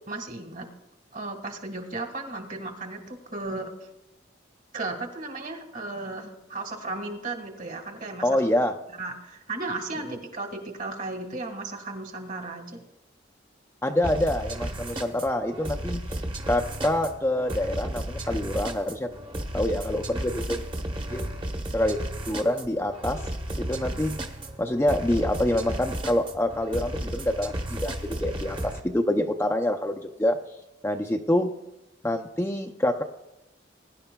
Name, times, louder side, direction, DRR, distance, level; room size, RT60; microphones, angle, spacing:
voice 1, 0.1-0.7 1.1-3.7 4.7-8.4 9.0-12.8, right 2 dB, 45° right, 4 dB, 1.7 m, -35 dB
voice 2, 8.2-8.7 13.8-16.2 16.5-19.1 19.5-20.6 21.1-21.2 21.7-22.0 22.3-23.3 23.6-24.2 24.6-27.9 28.2-30.4 30.8-31.5 32.0-33.0, left 1 dB, 10° left, 4 dB, 0.5 m, -26 dB
sound 1, 14.0-28.8, right 1 dB, 25° right, 1.0 m, -34 dB
21.5 x 11.0 x 2.3 m, 0.92 s
head